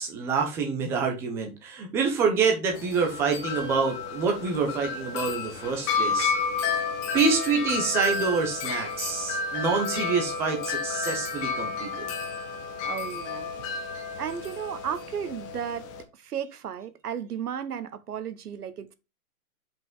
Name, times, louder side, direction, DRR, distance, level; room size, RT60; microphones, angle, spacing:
voice 1, 0.0-6.3 7.1-12.1, right 5 dB, 5° right, 0.6 m, -27 dB
Wind chime, 2.7-16.0, left 4 dB, 20° left, 0.8 m, -31 dB
voice 2, 12.8-13.7 14.2-18.9, right 8 dB, 90° right, 1.3 m, -34 dB
5.9 x 5.2 x 3.7 m
hypercardioid pair, 160°, 45 cm